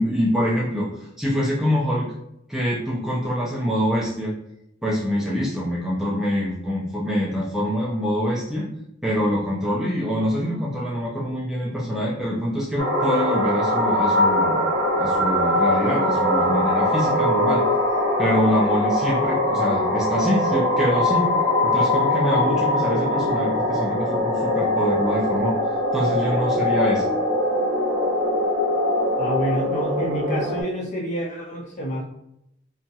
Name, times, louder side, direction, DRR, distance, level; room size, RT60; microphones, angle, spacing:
voice 1, 0.0-2.1 2.5-4.3 4.8-8.6 9.0-14.7 15.0-17.8 18.2-21.3 21.6-25.6 25.9-27.1, equal, ahead, -6 dB, 0.4 m, -25 dB
sound 1, 12.8-30.6, left 1 dB, 60° right, 0.8 m, -22 dB
voice 2, 29.2-32.0, right 1 dB, 40° left, -3 dB, 0.7 m, -27 dB
2.7 x 2.2 x 2.7 m, 0.79 s
head